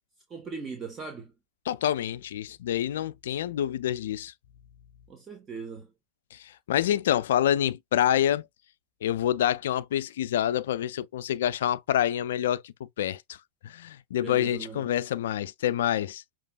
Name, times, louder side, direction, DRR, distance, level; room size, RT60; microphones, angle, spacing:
voice 1, 0.3-1.3 5.1-5.9 14.2-14.9, right 5 dB, 20° right, 1.3 m, -39 dB
voice 2, 1.7-4.3 6.3-8.5 9.0-13.4 13.6-16.2, left 11 dB, 60° left, 0.4 m, -27 dB
6.6 x 3.1 x 2.3 m
figure-of-eight pair, 90°, 0 cm